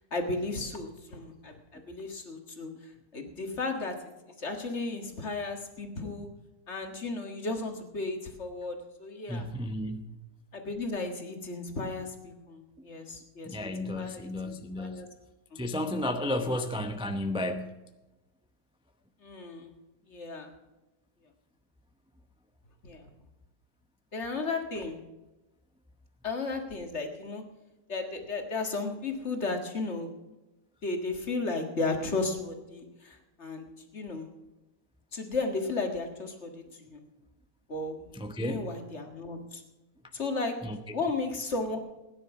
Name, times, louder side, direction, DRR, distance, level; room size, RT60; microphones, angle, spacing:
voice 1, 0.0-4.1 4.4-6.3 6.7-9.4 10.5-15.1 15.5-15.6 16.4-16.7 19.2-19.7 20.1-20.5 22.8-23.1 24.1-25.0 26.2-27.4 27.9-30.1 30.8-34.3 35.1-37.0 37.7-38.1 38.4-39.6 40.1-40.6 40.9-41.8, left 3 dB, 40° left, 4 dB, 2.0 m, -34 dB
voice 2, 9.3-10.1 13.5-15.1 15.5-17.7 38.1-38.7 40.6-40.8, left 1 dB, 10° right, 6 dB, 0.3 m, -33 dB
16.5 x 10.5 x 6.0 m, 1.1 s
omnidirectional pair, 1.8 m